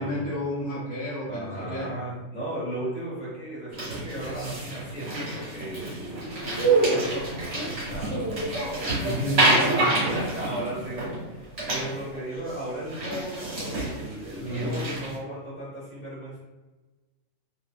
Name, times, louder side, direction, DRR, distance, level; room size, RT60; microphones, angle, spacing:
voice 1, 0.0-1.9 9.0-9.9 14.4-15.0, equal, 20° left, -11 dB, 0.5 m, -31 dB
voice 2, 1.2-8.7 9.3-16.4, right 1 dB, 35° left, -8 dB, 1.1 m, -35 dB
sound 1, 3.7-11.3 11.6-12.2 12.5-12.6 12.9-15.1, right 2 dB, 65° right, 1.4 m, -27 dB
2.7 x 2.5 x 2.3 m, 1.2 s
omnidirectional pair, 1.3 m